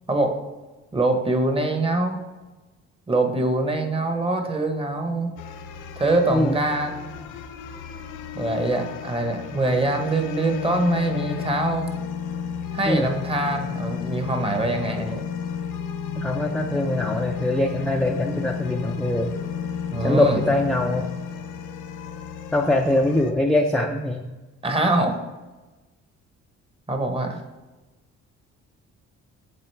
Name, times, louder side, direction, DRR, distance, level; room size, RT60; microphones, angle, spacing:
voice 1, 0.9-2.2 3.1-5.3 6.0-7.1 8.3-11.9 12.7-15.2 19.9-20.4 24.6-25.2 26.9-27.4, right 2 dB, 20° right, 5 dB, 0.9 m, -24 dB
sound 1, 5.4-23.3, left 7 dB, 85° left, 0.6 m, -32 dB
voice 2, 16.2-19.3 20.0-21.1 22.5-24.3, left 1 dB, 5° left, 2 dB, 0.4 m, -23 dB
7.7 x 3.7 x 3.3 m, 1.2 s
cardioid pair, 90°, 30 cm